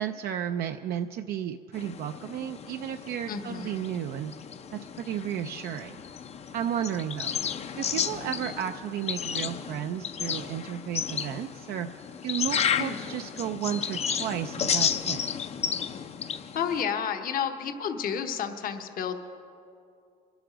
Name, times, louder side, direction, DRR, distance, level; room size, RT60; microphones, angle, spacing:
voice 1, 0.0-4.3 4.7-6.0 6.5-7.4 7.8-11.9 12.2-15.2, right 10 dB, 65° right, 6 dB, 0.5 m, -33 dB
sound 1, 1.7-16.8, left 7 dB, 40° left, 0.5 m, -33 dB
voice 2, 3.3-3.9 12.7-13.0 16.5-19.2, left 7 dB, 60° left, 6 dB, 1.0 m, -31 dB
22.5 x 8.1 x 5.0 m, 2.5 s
cardioid pair, 110°, 17 cm